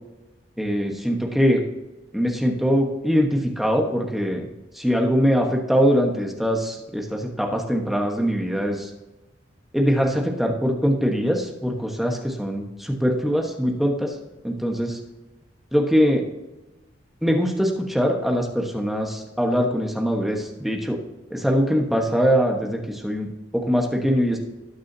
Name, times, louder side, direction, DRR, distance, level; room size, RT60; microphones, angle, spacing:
voice 1, 0.6-1.6 2.1-4.5 4.7-8.9 9.7-14.2 14.4-15.0 15.7-16.3 17.2-21.0 21.3-24.4, equal, ahead, 1 dB, 1.3 m, -22 dB
18.5 x 6.2 x 2.8 m, 1.1 s
head